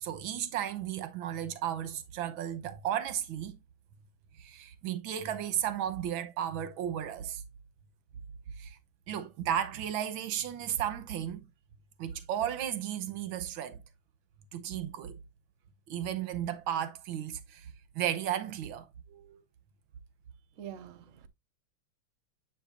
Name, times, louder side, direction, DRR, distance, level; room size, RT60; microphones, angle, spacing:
voice 1, 0.0-3.6 4.4-7.4 8.6-8.8 9.1-11.4 12.0-13.8 14.5-15.2 15.9-17.7 18.0-19.4, right 10 dB, 90° right, 1.6 m, -34 dB
voice 2, 20.5-21.3, right 10 dB, 55° right, 1.0 m, -45 dB
7.4 x 7.2 x 2.5 m
omnidirectional pair, 2.1 m